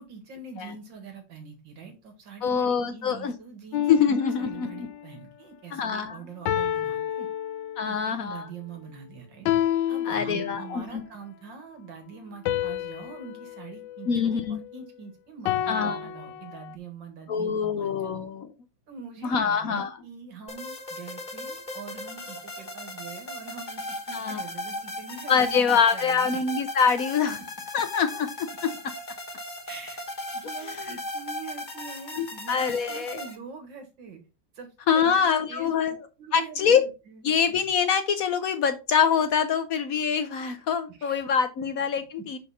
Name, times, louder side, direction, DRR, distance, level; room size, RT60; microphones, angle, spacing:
voice 1, 0.0-3.9 4.2-7.3 7.8-9.5 9.9-18.2 18.9-26.4 29.7-30.0 30.3-34.2 34.5-35.8 36.2-37.2 40.9-41.2 42.2-42.3, right 5 dB, 80° right, 5 dB, 2.5 m, -44 dB
voice 2, 2.4-3.3 3.9-4.9 5.7-6.2 7.8-8.5 10.1-11.0 14.1-14.6 15.7-16.0 17.3-18.5 19.2-20.0 24.1-24.4 25.3-27.4 27.7-28.7 30.6-31.0 32.2-33.2 34.9-36.1 36.3-36.8 37.2-42.4, left 6 dB, 60° left, 10 dB, 1.0 m, -25 dB
sound 1, 3.7-5.0 6.5-8.1 9.5-10.9 12.5-14.9 15.5-16.8, left 11 dB, 80° left, 1.2 m, -30 dB
sound 2, 20.5-33.4, left 1 dB, 30° left, 1.2 m, -37 dB
6.4 x 5.0 x 4.1 m, 0.29 s
omnidirectional pair, 2.0 m